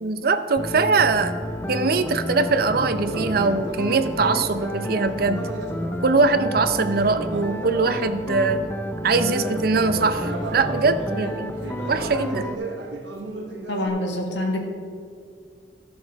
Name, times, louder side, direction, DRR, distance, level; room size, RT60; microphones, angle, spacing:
voice 1, 0.0-1.3 1.7-5.4 6.0-8.6 9.0-11.6 11.9-12.5, right 4 dB, 55° right, 10 dB, 0.5 m, -22 dB
sound 1, 0.6-12.6, equal, 10° left, 0.5 m, -31 dB
Conversation, 2.8-8.5 9.0-13.9, right 2 dB, 90° right, 1.3 m, -35 dB
voice 2, 13.7-14.6, left 1 dB, 80° left, 2 dB, 1.5 m, -25 dB
13.5 x 6.0 x 4.1 m, 2.3 s
head